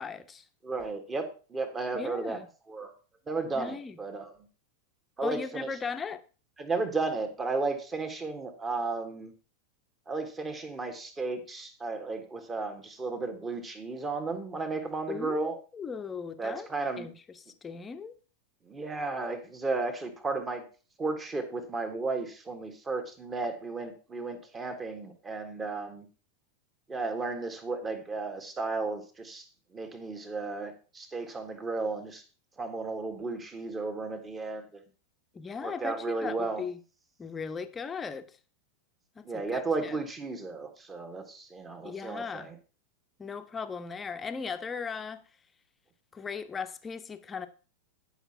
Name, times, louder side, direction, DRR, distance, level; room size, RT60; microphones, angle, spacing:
voice 1, 0.0-0.4 1.9-2.5 3.5-3.9 5.2-6.2 15.1-16.7 17.0-17.1 17.6-18.1 35.3-36.8 37.2-38.3 39.2-40.0 41.8-42.5 43.2-45.2 46.1-47.5, left 5 dB, 15° left, 0.8 m, -37 dB
voice 2, 0.6-2.4 2.7-2.9 3.3-4.3 5.2-5.7 6.6-9.3 10.1-15.5 16.4-17.1 18.6-20.6 21.0-26.1 26.9-29.5 29.7-32.2 32.6-34.6 35.6-36.6 39.2-42.6, right 3 dB, 15° right, 1.6 m, -34 dB
10.0 x 5.7 x 5.5 m
figure-of-eight pair, 90°, 0 cm